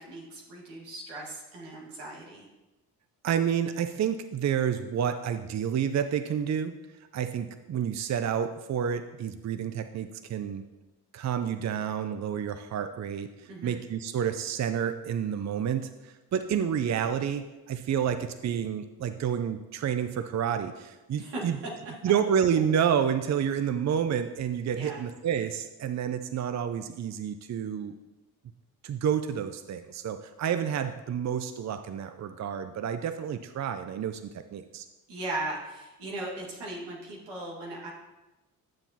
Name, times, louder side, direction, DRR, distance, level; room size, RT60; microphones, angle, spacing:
voice 1, 0.0-2.5 13.5-13.8 21.2-21.5 24.7-25.0 35.1-37.9, right 2 dB, 85° right, -3 dB, 2.0 m, -38 dB
voice 2, 3.2-6.8 7.1-10.6 11.1-21.6 22.0-27.9 28.8-34.9, right 8 dB, 45° right, 9 dB, 0.5 m, -29 dB
9.7 x 7.0 x 2.9 m, 1.1 s
supercardioid pair, 50°, 41 cm